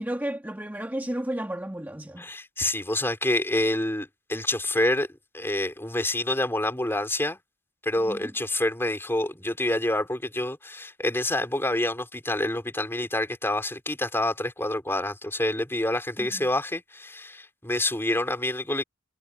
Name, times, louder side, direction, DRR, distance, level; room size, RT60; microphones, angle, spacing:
voice 1, 0.0-2.3 8.0-8.3 16.2-16.5, right 1 dB, 10° right, 1.7 m, -33 dB
voice 2, 2.2-5.1 5.3-7.4 7.8-18.8, left 1 dB, 15° left, 4.2 m, -27 dB
head